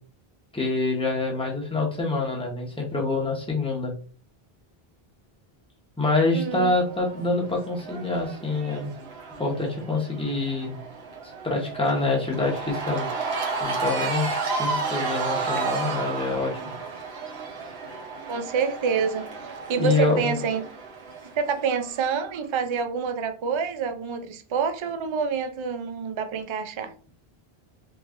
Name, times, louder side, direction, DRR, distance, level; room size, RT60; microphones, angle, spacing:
voice 1, 0.5-3.9 6.0-8.9 9.4-10.8 11.2-13.1 13.6-16.5 19.8-20.4, left 3 dB, 5° left, 0.9 m, -26 dB
voice 2, 6.3-6.7 18.3-20.6 21.4-26.9, right 6 dB, 50° right, 0.3 m, -27 dB
Cheering / Crowd, 6.8-22.1, right 4 dB, 85° right, 1.1 m, -32 dB
3.3 x 2.5 x 3.6 m
omnidirectional pair, 1.0 m